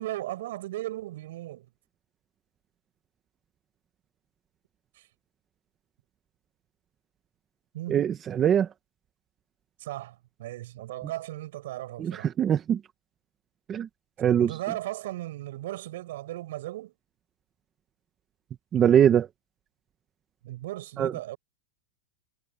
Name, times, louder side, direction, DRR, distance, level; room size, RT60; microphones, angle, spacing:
voice 1, 0.0-1.7 4.9-5.1 7.7-8.0 9.8-12.3 14.4-16.9 20.4-21.4, right 15 dB, 70° right, 7.9 m, -36 dB
voice 2, 7.9-8.7 12.0-12.8 13.7-13.9 14.2-14.5 18.7-19.3 21.0-21.1, right 9 dB, 25° right, 1.0 m, -22 dB
supercardioid pair, 155°, 0 cm